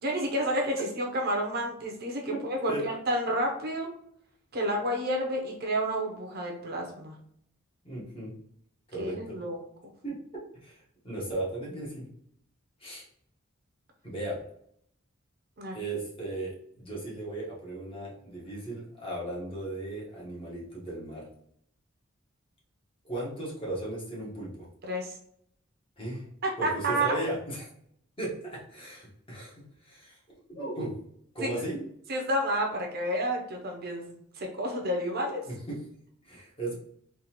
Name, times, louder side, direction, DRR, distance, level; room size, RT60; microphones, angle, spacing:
voice 1, 0.0-3.9 4.5-7.1 9.0-9.6 15.6-15.8 24.9-25.1 26.4-27.1 31.4-31.5 32.1-35.4, right 1 dB, 50° right, 1 dB, 0.6 m, -30 dB
voice 2, 7.8-8.3 8.9-9.4 10.0-10.2 10.6-12.1 12.8-13.0 14.0-14.4 15.7-21.3 23.0-24.7 26.0-26.2 26.6-27.7 28.2-30.2 30.5-31.0 31.3-31.9 35.5-35.8 36.2-36.7, right 1 dB, 25° left, -4 dB, 1.2 m, -36 dB
3.9 x 2.5 x 2.9 m, 0.68 s
head